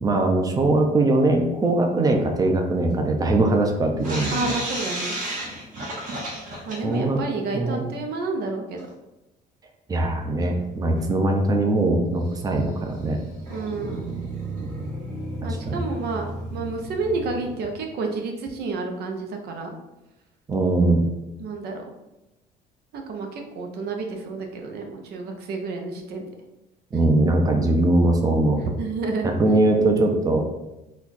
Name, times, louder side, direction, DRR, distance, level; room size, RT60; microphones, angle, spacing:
voice 1, 0.0-4.5 6.8-7.2 7.5-7.8 9.9-13.2 15.4-15.8 20.5-21.0 26.9-28.6 29.2-30.4, right 2 dB, 20° right, 3 dB, 0.6 m, -21 dB
sound 1, 4.0-7.1 7.4-7.5 7.8-7.9 8.8-8.9 9.9-10.0 10.5-10.6 11.0-11.1 12.2-17.8, right 1 dB, 50° right, 1.3 m, -33 dB
voice 2, 4.3-5.1 6.7-8.8 13.5-14.2 15.4-19.7 21.4-21.8 22.9-26.3 26.9-27.1 28.6-29.6, right 3 dB, 70° right, 3 dB, 0.8 m, -30 dB
4.2 x 2.4 x 4.1 m, 0.96 s
cardioid pair, 110°, 17 cm